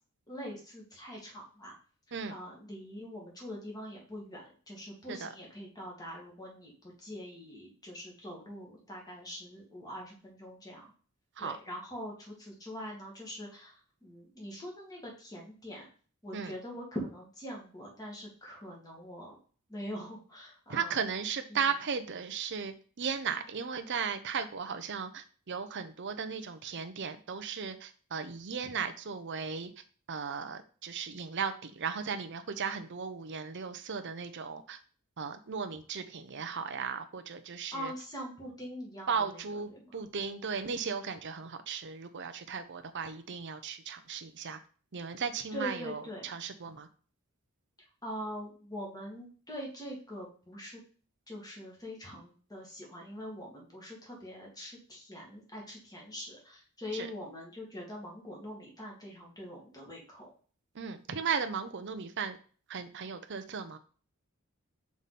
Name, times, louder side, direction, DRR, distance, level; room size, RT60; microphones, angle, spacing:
voice 1, 0.3-1.7 2.3-10.9 11.4-15.9 16.2-19.4 19.7-21.0 21.5-21.6 37.7-40.1 45.5-46.3 48.0-50.8 51.3-60.3, equal, 15° left, -2 dB, 2.1 m, -43 dB
voice 2, 20.7-29.7 30.1-34.8 35.2-37.9 39.1-44.6 44.9-46.9 56.9-57.1 60.7-62.4 62.7-63.8, right 6 dB, 55° right, 8 dB, 0.7 m, -36 dB
5.5 x 4.8 x 4.1 m, 0.40 s
head